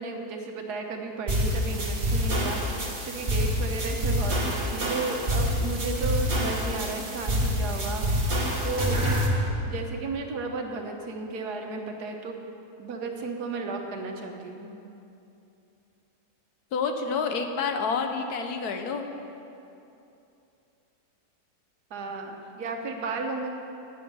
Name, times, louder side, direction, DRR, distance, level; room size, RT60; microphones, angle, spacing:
voice 1, 0.0-8.1 8.6-9.0 9.7-12.4 12.8-14.8 21.9-23.5, right 3 dB, 80° right, 3 dB, 1.6 m, -34 dB
sound 1, 1.3-9.3, equal, 35° right, 1.6 m, -27 dB
voice 2, 16.7-19.1, left 5 dB, 75° left, 6 dB, 1.4 m, -28 dB
18.0 x 7.0 x 5.5 m, 2.8 s
omnidirectional pair, 1.7 m